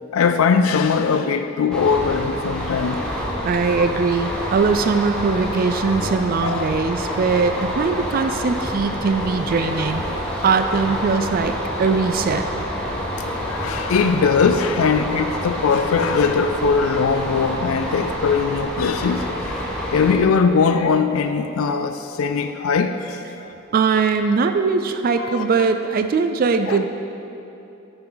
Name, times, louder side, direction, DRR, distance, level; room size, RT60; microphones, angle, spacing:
voice 1, 0.1-3.0 3.4-3.9 6.4-6.7 13.2-19.7 19.9-23.5 25.2-25.4 26.7-26.8, left 5 dB, 90° left, 8 dB, 0.4 m, -21 dB
sound 1, 1.7-20.2, equal, 5° left, 1.1 m, -28 dB
voice 2, 3.4-10.0 10.4-11.5 11.8-12.5 23.7-26.8, right 4 dB, 45° right, 8 dB, 0.3 m, -20 dB
11.0 x 6.8 x 3.9 m, 2.9 s
head